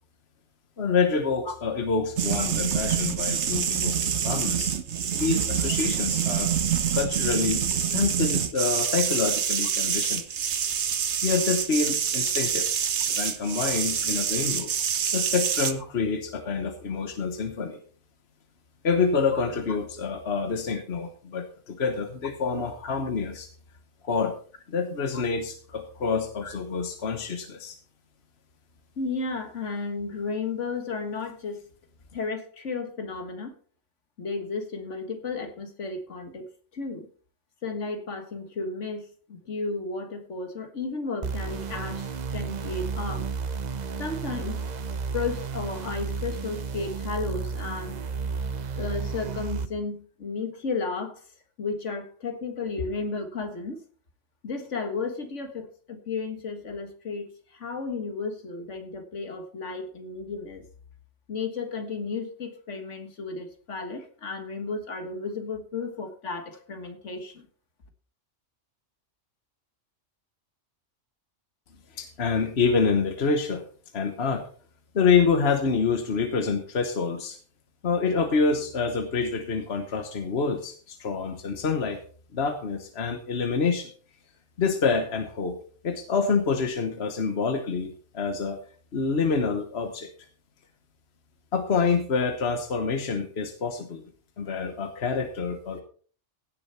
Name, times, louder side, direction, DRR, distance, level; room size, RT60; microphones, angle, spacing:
voice 1, 0.8-4.7 5.2-6.5 6.9-7.7 7.9-10.2 11.2-12.7 13.1-14.7 15.1-17.8 18.8-23.5 24.0-24.4 24.7-27.8 71.9-73.6 73.9-74.4 74.9-77.4 77.8-82.0 82.3-83.9 84.6-85.6 85.8-88.6 88.9-90.1 91.5-94.1 94.4-95.8, left 5 dB, 60° left, 6 dB, 1.4 m, -27 dB
sound 1, 2.2-15.7, right 8 dB, 70° right, 1.2 m, -26 dB
voice 2, 29.0-31.6 32.1-33.5 34.2-37.1 37.6-43.3 44.0-44.6 45.1-48.0 48.8-51.2 51.6-53.8 54.4-60.6 61.3-67.5, left 4 dB, 75° left, 6 dB, 1.9 m, -33 dB
sound 2, 41.2-49.7, right 5 dB, 45° right, 0.7 m, -32 dB
16.5 x 6.9 x 4.3 m, 0.43 s
omnidirectional pair, 1.2 m